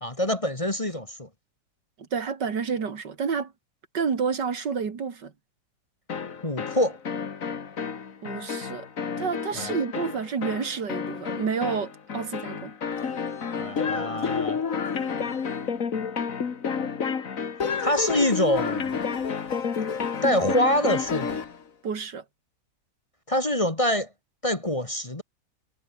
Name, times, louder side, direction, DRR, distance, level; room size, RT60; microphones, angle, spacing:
voice 1, 0.0-1.3 6.4-7.0 9.6-9.7 13.6-14.6 17.8-19.0 20.2-21.4 23.3-24.1 24.4-25.2, left 1 dB, 20° left, 1.8 m, -25 dB
voice 2, 2.1-3.5 3.9-5.3 8.2-8.9 9.2-12.7 21.8-22.2, right 6 dB, 80° right, 2.8 m, -29 dB
sound 1, 6.1-21.6, left 6 dB, 50° left, 2.0 m, -30 dB
omnidirectional pair, 1.8 m